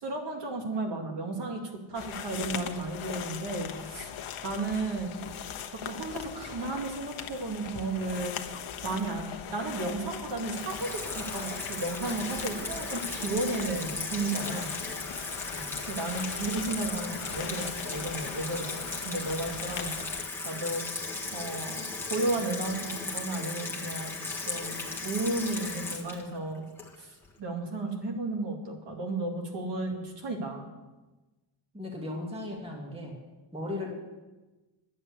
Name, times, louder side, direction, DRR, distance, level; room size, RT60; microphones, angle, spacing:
voice 1, 0.0-1.6 1.9-4.1 4.4-5.2 5.6-8.3 8.8-9.2 9.5-14.7 15.9-18.8 19.0-19.9 20.4-20.8 21.3-24.2 24.5-26.6 27.0-30.7, right 2 dB, 55° right, 1 dB, 2.6 m, -33 dB
sound 1, 1.9-20.2, left 8 dB, 80° left, 1.1 m, -40 dB
Water tap faucet / Sink (filling or washing), 10.5-27.3, left 3 dB, 5° left, 1.6 m, -36 dB
voice 2, 15.4-15.8 31.7-33.2 33.5-33.9, left 2 dB, 10° right, -1 dB, 2.1 m, -37 dB
11.0 x 7.9 x 9.7 m, 1.2 s
wide cardioid pair, 165°, 49 cm